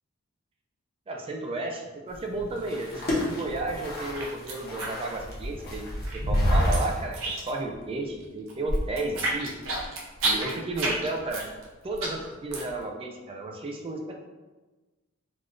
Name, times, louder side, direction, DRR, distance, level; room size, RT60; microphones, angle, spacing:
voice 1, 1.1-5.8 6.3-9.5 10.2-11.5 11.8-14.2, right 2 dB, 25° right, 2 dB, 0.3 m, -33 dB
sound 1, 2.1-7.0, equal, 45° left, 0.7 m, -29 dB
sound 2, 2.6-3.6 3.8-5.6 5.9-7.7 8.0-12.8, right 2 dB, 65° right, 0.7 m, -31 dB
3.5 x 2.3 x 2.5 m, 1.2 s
head